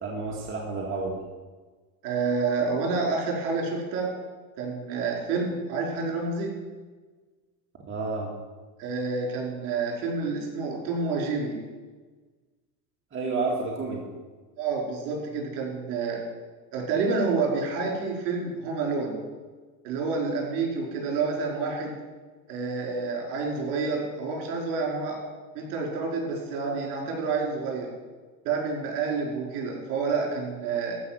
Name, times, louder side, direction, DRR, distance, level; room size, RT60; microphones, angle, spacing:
voice 1, 0.0-1.2 7.9-8.3 13.1-14.0, right 3 dB, 25° right, -1 dB, 2.1 m, -30 dB
voice 2, 2.0-4.1 4.6-6.5 8.8-11.6 14.6-16.2 16.7-19.2 19.8-21.9 22.5-25.2 25.5-27.9 28.4-30.9, right 4 dB, 70° right, -1 dB, 4.9 m, -28 dB
14.0 x 5.8 x 7.7 m, 1.3 s
supercardioid pair, 120°, 43 cm